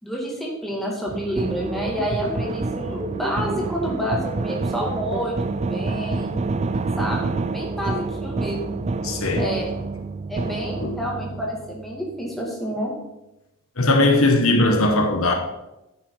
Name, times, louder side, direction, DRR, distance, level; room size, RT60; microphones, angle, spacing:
voice 1, 0.0-6.4 7.0-8.8 9.4-9.8 10.3-12.9, equal, ahead, 2.1 m, -29 dB
sound 1, 1.1-12.0, right 3 dB, 30° right, 0.4 m, -28 dB
sound 2, 1.4-5.2, equal, 15° right, 1.0 m, -32 dB
voice 2, 9.0-9.4 10.8-10.9 13.8-15.3, left 2 dB, 70° left, 1.4 m, -19 dB
9.6 x 7.1 x 4.8 m
head